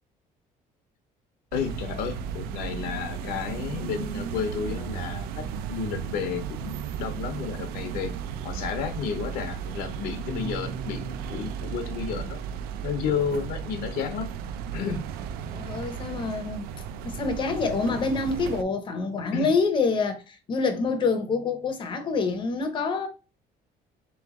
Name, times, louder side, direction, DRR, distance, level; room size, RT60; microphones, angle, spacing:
voice 1, 1.5-8.1 8.4-12.4 12.8-14.3 14.7-15.0 19.3-19.5, left 7 dB, 75° left, 0.8 m, -32 dB
sound 1, 1.5-18.6, right 8 dB, 85° right, 0.4 m, -35 dB
sound 2, 10.3-14.4, right 4 dB, 25° right, 0.4 m, -43 dB
voice 2, 15.5-16.7 17.0-23.1, left 4 dB, 30° left, 0.6 m, -26 dB
3.3 x 3.1 x 3.5 m
cardioid pair, 175°, 16 cm